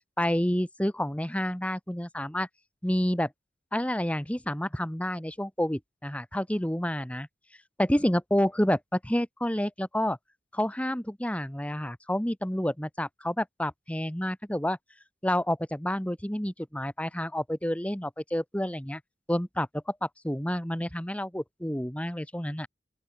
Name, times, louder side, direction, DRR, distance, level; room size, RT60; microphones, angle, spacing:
voice 1, 0.2-2.5 2.8-3.3 3.7-7.3 7.8-10.2 10.5-14.8 15.2-19.0 19.3-22.7, equal, 5° left, 1.5 m, -29 dB
open air
head